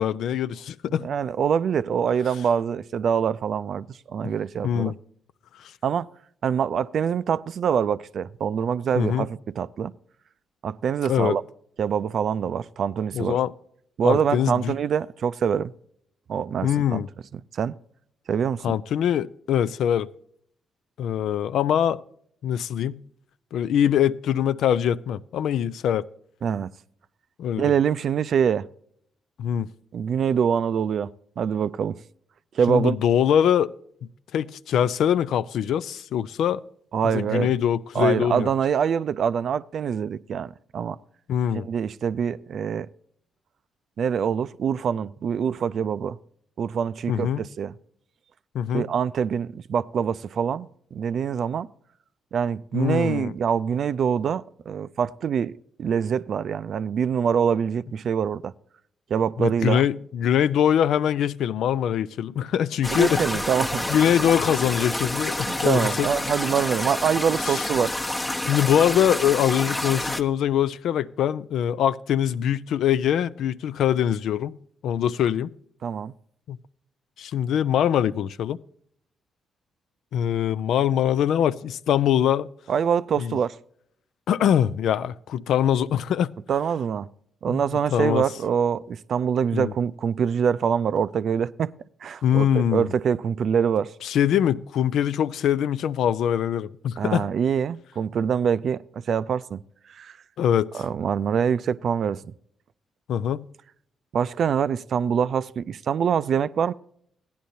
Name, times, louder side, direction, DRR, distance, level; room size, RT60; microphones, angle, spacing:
voice 1, 0.0-1.1 4.2-4.3 4.6-5.0 8.9-9.3 11.0-11.4 13.1-13.5 14.0-14.7 16.6-17.1 18.6-20.1 21.0-22.0 22.4-23.0 23.5-26.1 27.4-27.7 29.4-29.7 32.7-33.7 34.3-36.6 37.0-38.5 41.3-41.7 47.1-47.5 48.5-48.9 52.7-53.3 59.4-63.2 63.9-66.1 67.4-67.7 68.5-74.6 74.8-75.5 76.5-76.6 77.2-78.6 80.1-82.5 83.2-83.4 84.3-86.3 87.5-87.6 87.9-88.3 89.5-89.7 92.2-92.9 94.0-97.3 100.4-100.8 103.1-103.5, left 9 dB, 80° left, 0.4 m, -23 dB
voice 2, 1.0-4.9 5.8-6.1 6.4-9.9 10.6-11.4 11.8-13.4 14.0-15.7 16.3-17.0 17.5-17.7 18.3-18.8 26.4-26.7 27.6-28.7 29.9-31.1 31.4-32.0 32.5-33.0 36.9-37.5 37.9-41.0 41.5-42.9 44.0-46.2 46.6-47.7 48.7-51.7 52.3-55.5 55.8-58.5 59.1-59.8 62.9-63.9 65.5-67.9 75.8-76.1 82.7-83.6 86.5-87.1 87.4-91.7 92.0-93.9 97.0-99.6 99.9-100.1 100.7-102.2 104.1-106.7, right 7 dB, 65° right, 0.4 m, -25 dB
sound 1, 62.8-70.2, left 1 dB, 25° left, 0.9 m, -28 dB
15.5 x 10.0 x 2.7 m
supercardioid pair, 60°, 0 cm